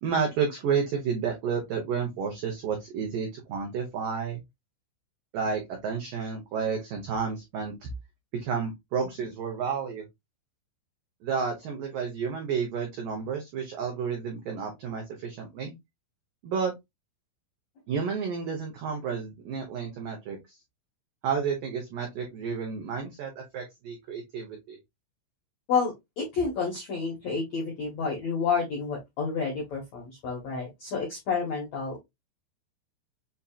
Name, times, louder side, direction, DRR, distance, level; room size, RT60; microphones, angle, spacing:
voice 1, 0.0-4.4 5.3-7.9 8.3-10.0 11.2-15.7 16.4-16.7 17.9-20.4 21.2-24.8, right 6 dB, 90° right, 1.9 m, -31 dB
voice 2, 25.7-32.0, left 5 dB, 85° left, 1.5 m, -30 dB
7.3 x 2.8 x 2.4 m
omnidirectional pair, 5.5 m